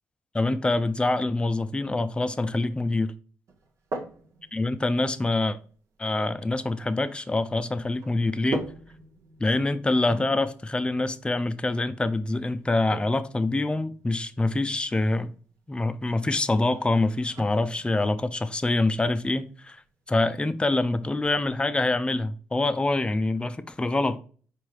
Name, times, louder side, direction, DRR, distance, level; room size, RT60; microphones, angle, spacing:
voice 1, 0.3-3.1 4.5-5.6 6.0-8.7 9.4-15.3 15.7-19.8 20.1-24.2, left 2 dB, 15° left, 0.5 m, -25 dB
sound 1, 3.5-21.5, right 3 dB, 60° right, 0.9 m, -44 dB
4.7 x 3.4 x 3.2 m
supercardioid pair, 60°, 6 cm